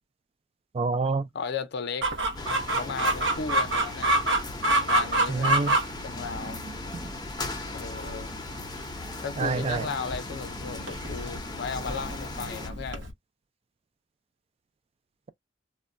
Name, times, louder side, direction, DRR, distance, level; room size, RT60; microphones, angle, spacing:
voice 1, 0.7-1.3 5.3-5.7 9.4-9.9, right 4 dB, 30° right, 0.3 m, -27 dB
voice 2, 1.3-2.1 2.5-4.1 4.8-5.7 6.0-6.6 7.7-8.3 9.2-13.1, left 5 dB, 60° left, 0.5 m, -35 dB
Chicken rooster, 2.0-13.1, right 1 dB, 75° right, 0.8 m, -28 dB
sound 1, 2.3-12.7, left 2 dB, 20° left, 0.6 m, -38 dB
2.2 x 2.1 x 3.7 m
head